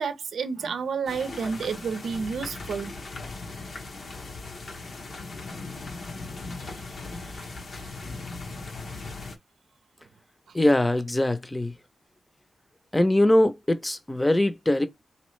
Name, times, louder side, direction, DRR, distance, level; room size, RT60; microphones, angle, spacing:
voice 1, 0.0-2.9 8.0-8.2, right 5 dB, 90° right, 0.5 m, -30 dB
sound 1, 1.1-9.4, left 3 dB, 70° left, 0.9 m, -38 dB
voice 2, 10.5-11.7 12.9-14.9, left 1 dB, 15° left, 0.6 m, -22 dB
4.2 x 2.8 x 3.1 m
wide cardioid pair, 85°, 0 cm